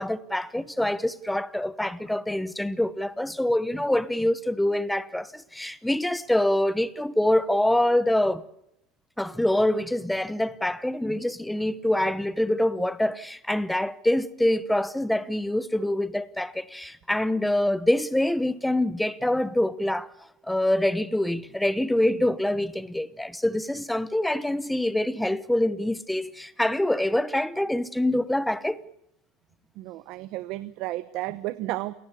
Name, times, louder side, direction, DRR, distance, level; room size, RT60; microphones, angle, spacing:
voice 1, 0.0-8.4 9.2-20.1 20.5-28.8, left 1 dB, 5° left, 1.0 m, -25 dB
voice 2, 29.8-31.9, right 17 dB, 50° right, 1.0 m, -32 dB
29.0 x 18.0 x 6.8 m
supercardioid pair, 145°, 0 cm